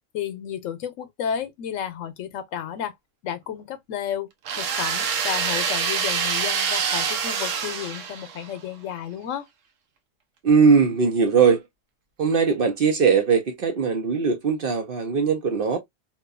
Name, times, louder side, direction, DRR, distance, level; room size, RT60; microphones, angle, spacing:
voice 1, 0.1-2.9 3.2-4.3 4.6-9.5, left 9 dB, 90° left, 1.0 m, -32 dB
sound 1, 4.4-8.6, right 6 dB, 80° right, 1.0 m, -26 dB
voice 2, 10.4-11.6 12.2-15.8, right 5 dB, 60° right, 0.7 m, -20 dB
2.9 x 2.2 x 2.3 m
omnidirectional pair, 1.3 m